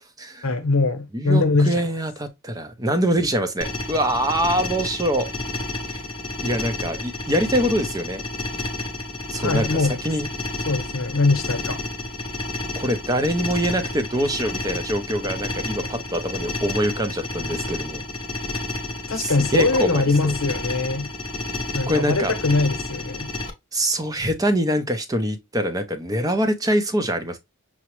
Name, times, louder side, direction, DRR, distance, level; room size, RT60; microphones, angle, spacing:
voice 1, 0.4-1.9 9.4-10.0 10.6-11.8 19.1-21.1 21.7-23.3, left 3 dB, 70° left, 0.9 m, -22 dB
voice 2, 1.1-5.3 5.9-6.0 6.4-8.2 9.3-10.3 12.8-18.0 19.2-20.3 21.9-22.3 23.7-27.4, equal, 15° right, 0.5 m, -24 dB
sound 1, 3.6-23.5, left 2 dB, 25° left, 0.7 m, -30 dB
5.9 x 2.1 x 3.0 m
head